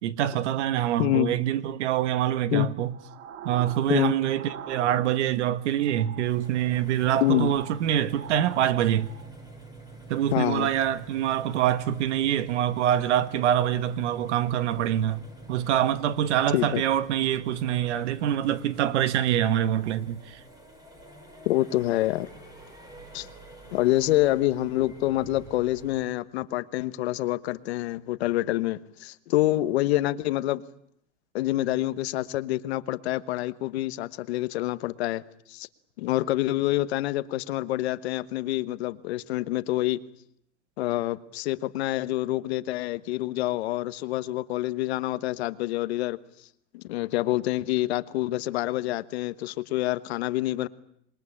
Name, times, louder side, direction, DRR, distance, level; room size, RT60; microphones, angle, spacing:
voice 1, 0.0-2.9 3.4-9.1 10.1-15.2 15.5-20.4, right 11 dB, 65° right, 1.6 m, -25 dB
voice 2, 1.0-1.3 2.5-2.7 3.9-4.1 7.2-7.6 10.3-10.7 16.5-16.8 21.4-22.3 23.1-23.3 23.7-30.6 31.3-35.2 35.5-35.7 36.0-40.0 40.8-46.2 46.7-50.7, left 16 dB, 60° left, 1.2 m, -27 dB
sound 1, 2.8-5.4 5.7-9.3, right 9 dB, 85° right, 1.7 m, -43 dB
sound 2, 6.2-26.0, right 2 dB, 10° right, 4.2 m, -47 dB
27.0 x 22.0 x 8.7 m
supercardioid pair, 170°, 37 cm